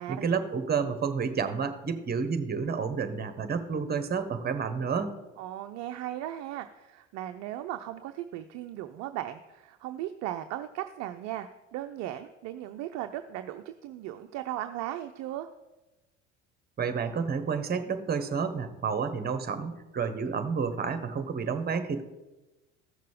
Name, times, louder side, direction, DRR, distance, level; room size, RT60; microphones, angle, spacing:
voice 1, 0.0-5.1 16.8-22.0, right 5 dB, 25° right, 9 dB, 1.2 m, -30 dB
voice 2, 5.4-15.5, right 13 dB, 50° right, 8 dB, 0.6 m, -37 dB
14.5 x 6.6 x 5.0 m, 1.1 s
figure-of-eight pair, 65°, 36 cm